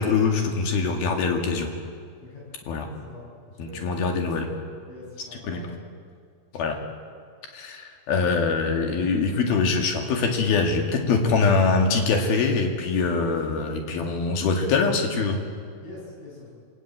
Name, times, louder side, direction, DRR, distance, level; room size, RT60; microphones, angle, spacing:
voice 1, 0.0-1.7 2.7-2.9 3.6-4.5 5.4-5.6 6.5-6.8 7.5-15.4, left 4 dB, 60° left, 3 dB, 3.6 m, -23 dB
voice 2, 3.5-4.4 4.9-5.7 15.8-16.5, left 2 dB, 80° left, -3 dB, 9.1 m, -43 dB
27.0 x 17.0 x 8.7 m, 2.1 s
omnidirectional pair, 5.5 m